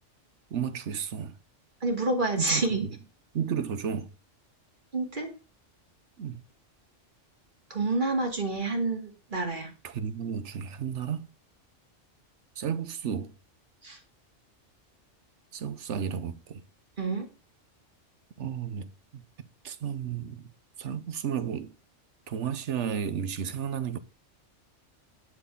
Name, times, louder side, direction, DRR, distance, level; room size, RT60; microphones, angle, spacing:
voice 1, 0.5-1.3 2.4-2.6 3.3-4.1 6.2-6.4 9.8-11.3 12.6-13.3 15.5-16.6 18.4-18.9 19.1-19.2 19.6-20.5 20.8-21.7 22.3-24.0, right 8 dB, 75° right, 1.2 m, -32 dB
voice 2, 1.8-2.9 4.9-5.3 7.7-9.7 13.8-14.0 17.0-17.3, right 2 dB, 40° right, 2.7 m, -28 dB
11.5 x 4.2 x 7.1 m
omnidirectional pair, 1.2 m